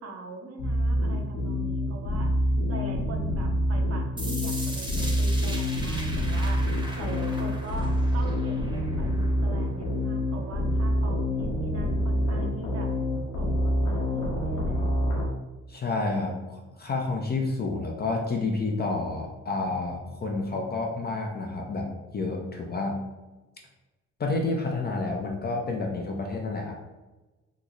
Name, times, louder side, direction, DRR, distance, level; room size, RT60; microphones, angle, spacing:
voice 1, 0.0-2.3 2.7-6.7 7.0-12.9 13.4-14.9, right 2 dB, 55° right, 2 dB, 0.7 m, -41 dB
sound 1, 0.6-15.3, equal, 60° left, 0.9 m, -27 dB
sound 2, 4.2-10.2, right 1 dB, 15° right, 0.8 m, -40 dB
voice 2, 15.7-21.9 22.1-23.0 24.2-26.8, left 3 dB, 35° left, 0 dB, 0.5 m, -29 dB
3.0 x 2.0 x 3.7 m, 1.1 s
cardioid pair, 90°, 30 cm